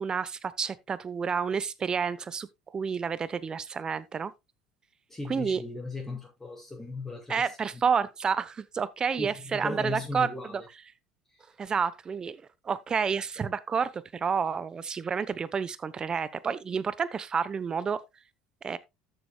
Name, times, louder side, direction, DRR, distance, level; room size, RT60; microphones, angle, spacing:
voice 1, 0.0-4.3 5.3-5.6 7.3-10.6 11.6-18.0 18.6-18.8, right 6 dB, 30° right, 1.0 m, -30 dB
voice 2, 5.1-7.5 7.7-7.9 9.2-10.6 11.3-11.4, left 3 dB, 15° left, 5.9 m, -37 dB
13.5 x 7.9 x 2.3 m
hypercardioid pair, 65°, 3 cm